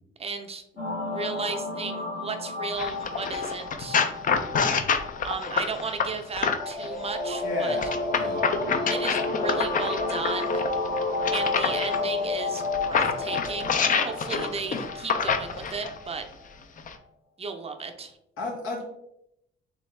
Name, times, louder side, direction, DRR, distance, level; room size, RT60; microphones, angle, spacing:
voice 1, 0.2-0.8 1.1-4.0 5.2-7.8 8.9-10.6 11.3-16.2 17.4-18.2, right 4 dB, 30° right, 6 dB, 0.5 m, -35 dB
sound 1, 0.8-16.0, left 3 dB, 65° left, 1.4 m, -31 dB
sound 2, 2.8-6.9 7.8-12.0 12.6-16.0 16.8-16.9, left 6 dB, 40° left, 0.4 m, -27 dB
voice 2, 7.4-7.9 8.1-8.4 14.3-14.4 18.4-18.8, left 2 dB, 85° left, -1 dB, 1.2 m, -33 dB
3.4 x 3.2 x 3.2 m, 0.79 s
cardioid pair, 90°, 20 cm